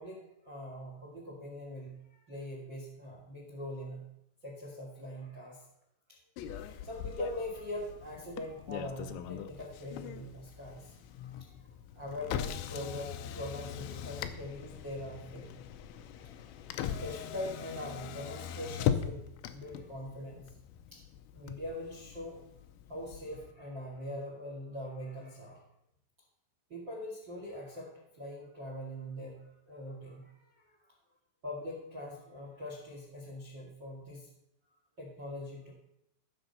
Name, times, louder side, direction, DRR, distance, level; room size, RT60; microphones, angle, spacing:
voice 1, 0.0-4.0 4.4-5.6 6.6-10.9 11.2-11.6 11.9-13.1 13.3-15.5 16.1-16.7 17.0-19.2 19.5-20.5 20.9-21.0 21.3-22.4 22.9-25.6 26.7-30.8 31.4-34.3 35.0-35.7, left 1 dB, 45° right, 1 dB, 1.5 m, -42 dB
Motor vehicle (road), 6.4-23.5, left 9 dB, 80° left, 2.8 m, -40 dB
15.0 x 6.7 x 5.4 m, 0.78 s
omnidirectional pair, 5.8 m